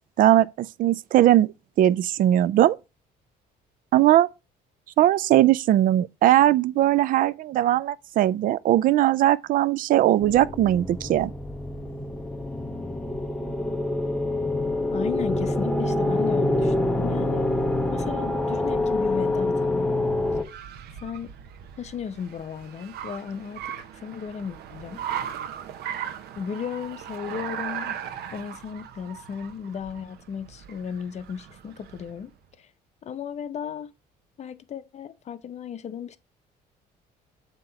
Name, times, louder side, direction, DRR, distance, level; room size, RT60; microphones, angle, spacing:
voice 1, 0.2-1.5 1.8-2.8 3.9-4.3 5.0-11.3, right 13 dB, 55° right, 0.4 m, -19 dB
sound 1, 10.2-20.4, left 2 dB, 5° left, 0.7 m, -26 dB
voice 2, 14.9-17.6 17.9-20.1 21.0-21.3 21.8-25.0 26.4-28.0 28.3-32.3 32.6-32.7 33.0-33.9 34.4-36.2, left 7 dB, 40° left, 0.7 m, -35 dB
Car, 19.5-32.2, right 9 dB, 70° right, 0.8 m, -38 dB
7.6 x 3.0 x 5.7 m
cardioid pair, 110°, 17 cm